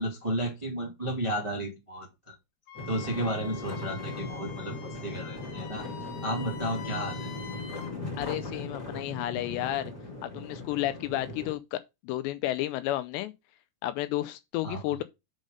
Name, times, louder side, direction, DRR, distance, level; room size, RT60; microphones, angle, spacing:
voice 1, 0.0-2.3 2.9-5.9 6.2-7.3 14.6-14.8, right 1 dB, 15° right, 1.2 m, -33 dB
Wind instrument woodwind instrument, 2.7-7.9, left 9 dB, 65° left, 2.1 m, -45 dB
sound 1, 2.7-11.5, left 2 dB, 25° left, 2.7 m, -38 dB
voice 2, 8.2-9.9 10.2-13.3 13.8-15.0, left 15 dB, 85° left, 2.7 m, -32 dB
6.3 x 5.5 x 5.1 m
omnidirectional pair, 5.1 m